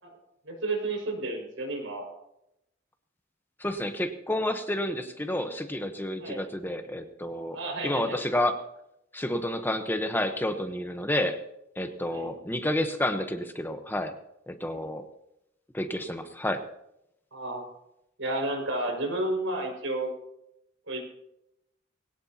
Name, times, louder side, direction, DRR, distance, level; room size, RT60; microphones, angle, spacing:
voice 1, 0.5-2.1 6.2-6.4 7.5-8.2 12.1-12.3 14.7-14.9 17.3-17.7 18.2-20.1 20.9-21.0, right 2 dB, 85° right, 1 dB, 5.9 m, -31 dB
voice 2, 3.6-7.6 7.8-8.6 9.1-11.4 11.8-14.1 14.5-15.0 15.7-16.6, left 1 dB, 10° left, 7 dB, 1.0 m, -30 dB
21.5 x 17.5 x 2.9 m, 0.81 s
head